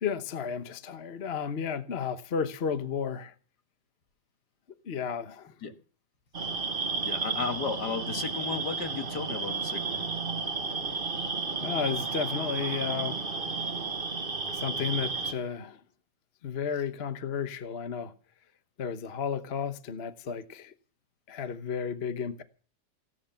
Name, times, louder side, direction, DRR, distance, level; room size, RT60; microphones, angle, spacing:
voice 1, 0.0-3.3 4.8-5.5 11.6-13.2 14.5-15.8 16.4-18.1 18.8-20.7 21.3-22.4, left 6 dB, 40° left, 1.0 m, -33 dB
sound 1, 6.3-15.3, right 4 dB, 30° right, 1.5 m, -32 dB
voice 2, 7.0-10.1, left 5 dB, 55° left, 2.1 m, -34 dB
16.5 x 11.0 x 7.0 m
omnidirectional pair, 2.1 m